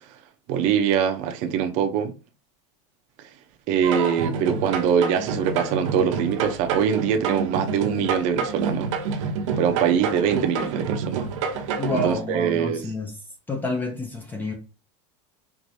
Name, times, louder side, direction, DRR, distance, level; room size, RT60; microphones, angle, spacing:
voice 1, 0.5-2.1 3.7-8.9 9.6-11.3 12.0-12.9, right 8 dB, 50° right, 0.7 m, -23 dB
sound 1, 3.8-12.2, right 5 dB, 80° right, 0.9 m, -28 dB
voice 2, 11.8-13.1 13.5-14.5, left 2 dB, 10° left, 0.6 m, -29 dB
4.7 x 2.6 x 2.7 m
supercardioid pair, 140°, 16 cm